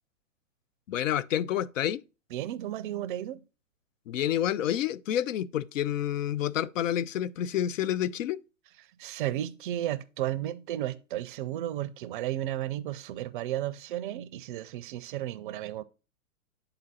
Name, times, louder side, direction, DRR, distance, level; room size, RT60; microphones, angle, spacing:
voice 1, 0.9-2.0 4.1-8.4, left 11 dB, 70° left, 0.5 m, -29 dB
voice 2, 2.3-3.4 9.0-15.8, right 13 dB, 40° right, 0.5 m, -33 dB
8.6 x 4.0 x 4.1 m
hypercardioid pair, 120°, 40 cm